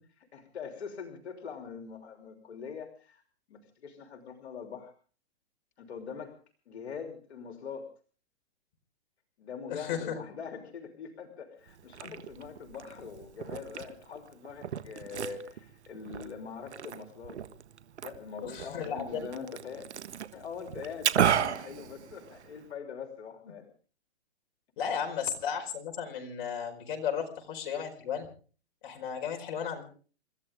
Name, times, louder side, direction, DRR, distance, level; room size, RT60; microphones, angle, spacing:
voice 1, 0.3-3.2 3.5-4.9 5.8-6.4 6.7-7.9 9.4-17.4 18.0-19.9 20.3-23.7, left 6 dB, 75° left, 5 dB, 3.2 m, -43 dB
voice 2, 9.7-10.2 12.0-12.1 18.4-19.2 24.8-28.3 28.8-29.8, left 7 dB, 50° left, 3 dB, 4.8 m, -34 dB
Liquid, 11.7-22.7, right 9 dB, 85° right, 1.5 m, -35 dB
28.5 x 14.0 x 3.6 m, 0.41 s
hypercardioid pair, 150°, 33 cm